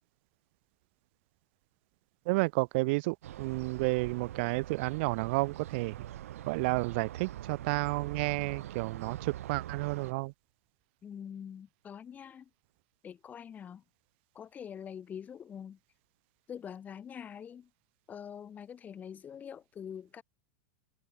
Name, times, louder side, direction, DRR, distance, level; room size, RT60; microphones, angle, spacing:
voice 1, 2.3-6.1 6.5-10.3, right 25 dB, 55° right, 1.9 m, -31 dB
sound 1, 3.2-10.1, right 12 dB, 75° right, 7.1 m, -43 dB
voice 2, 11.0-12.5 13.0-13.8 14.4-15.8 16.5-17.7 18.1-20.2, left 8 dB, 20° left, 5.2 m, -44 dB
supercardioid pair, 140°, 8 cm